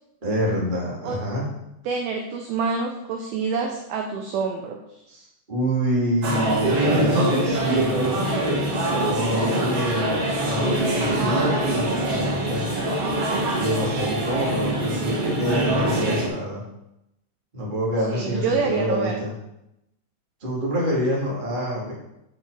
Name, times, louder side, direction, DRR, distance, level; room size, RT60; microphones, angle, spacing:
voice 1, 0.2-1.5 5.1-8.2 8.5-12.7 13.6-16.6 17.5-19.3 20.4-21.9, equal, 15° right, -5 dB, 1.8 m, -27 dB
voice 2, 1.8-4.8 18.1-19.2, right 5 dB, 80° right, 3 dB, 2.3 m, -27 dB
sound 1, 6.2-16.3, right 1 dB, 60° right, 1.7 m, -23 dB
7.9 x 7.8 x 4.8 m, 0.87 s
omnidirectional pair, 5.2 m